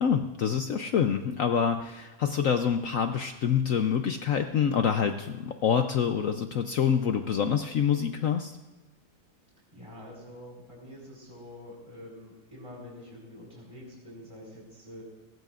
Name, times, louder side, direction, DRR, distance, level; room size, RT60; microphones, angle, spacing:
voice 1, 0.0-8.6, left 7 dB, 80° left, 7 dB, 0.7 m, -26 dB
voice 2, 9.7-15.0, left 1 dB, 15° right, -2 dB, 4.9 m, -46 dB
18.0 x 17.0 x 2.5 m, 1.2 s
omnidirectional pair, 2.2 m